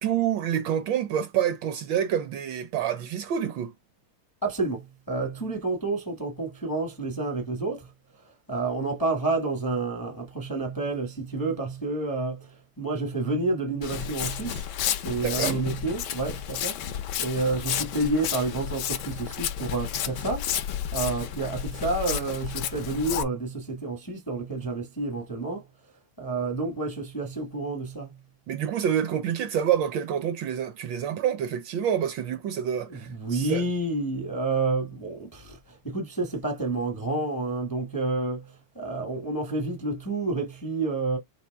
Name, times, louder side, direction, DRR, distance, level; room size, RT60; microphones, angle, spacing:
voice 1, 0.0-3.7 15.2-15.6 28.5-33.7, right 9 dB, 75° right, 1.2 m, -27 dB
voice 2, 4.4-7.9 8.5-14.7 15.0-16.8 17.2-25.6 26.2-28.1 32.9-41.2, right 3 dB, 20° left, 0.6 m, -29 dB
Walk footsteps, 13.8-23.2, left 10 dB, 70° left, 1.0 m, -31 dB
4.2 x 2.8 x 4.5 m
omnidirectional pair, 2.3 m